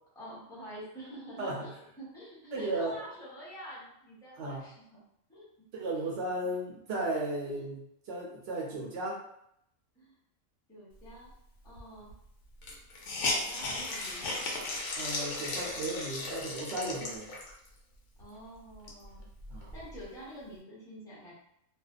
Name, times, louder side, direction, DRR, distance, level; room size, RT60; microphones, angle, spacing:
voice 1, 0.1-5.0 5.3-5.4 5.9-6.1 6.4-6.5 7.4-7.6 9.9-10.2 10.7-11.3 11.6-12.1 13.2-14.4 18.2-19.2 19.7-21.3, equal, 5° left, -8 dB, 0.7 m, -47 dB
voice 2, 2.5-3.0 4.4-4.7 5.7-9.2 15.0-17.3 19.5-19.7, right 2 dB, 65° right, -2 dB, 0.7 m, -35 dB
Hiss, 11.8-11.9 12.1-12.2 12.6-17.7 18.2-18.3 18.7-20.1, left 2 dB, 80° left, 1.0 m, -36 dB
2.5 x 2.2 x 2.3 m, 0.74 s
omnidirectional pair, 1.4 m